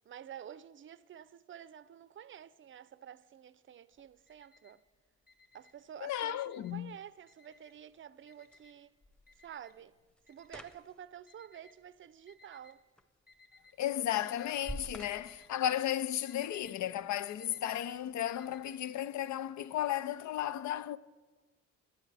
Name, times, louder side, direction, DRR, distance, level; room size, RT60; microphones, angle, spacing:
voice 1, 0.0-4.8 5.5-8.9 9.4-9.9 10.3-12.8, right 9 dB, 40° right, 0.5 m, -50 dB
Alarm, 3.9-4.9 5.2-6.9 7.3-7.9 8.3-12.7 13.3-13.9 14.2-14.8 15.1-18.7, left 3 dB, 30° left, 2.0 m, -62 dB
sound 1, 5.5-16.5, right 1 dB, 5° left, 0.9 m, -53 dB
voice 2, 6.0-6.9 13.8-21.0, left 11 dB, 70° left, 0.6 m, -34 dB
21.5 x 9.9 x 3.4 m
cardioid pair, 90°, 30 cm